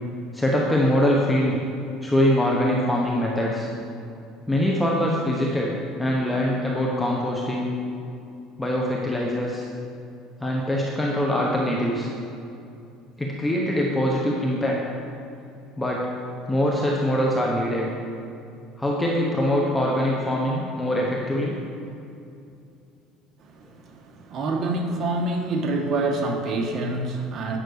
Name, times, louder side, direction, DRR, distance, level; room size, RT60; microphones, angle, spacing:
voice 1, 0.3-1.6 2.0-3.7 4.5-5.7 6.0-7.7 8.6-9.7 10.4-12.1 13.2-14.9 15.8-16.0 16.5-17.9 18.8-21.5, left 1 dB, 10° left, -3 dB, 0.9 m, -23 dB
voice 2, 23.4-27.6, right 2 dB, 40° right, 3 dB, 1.2 m, -27 dB
9.1 x 6.0 x 6.5 m, 2.6 s
cardioid pair, 135°, 0 cm